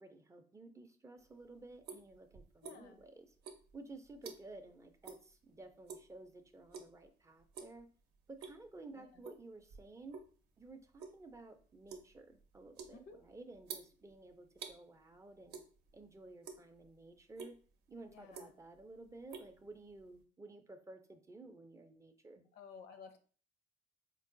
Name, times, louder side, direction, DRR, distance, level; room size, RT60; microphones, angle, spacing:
voice 1, 0.0-3.3 3.7-7.9 8.3-10.2 10.6-15.6 15.9-17.6 17.9-22.5, right 2 dB, 20° right, 7 dB, 0.4 m, -54 dB
sound 1, 1.2-3.1 3.4-4.7 5.0-5.3 5.6-6.2 6.7-7.1 7.4-7.8 8.2-8.8 9.2-10.3 10.7-14.8 15.5-16.0 16.3-16.9 17.4-17.5 18.1-18.8 19.0-20.2, right 5 dB, 75° right, 0.6 m, -50 dB
voice 2, 2.6-3.0 8.9-9.2 12.9-13.2 18.1-18.5 22.5-23.2, left 5 dB, 70° left, 8 dB, 0.6 m, -54 dB
4.5 x 2.3 x 2.5 m, 0.41 s
cardioid pair, 110°, 17 cm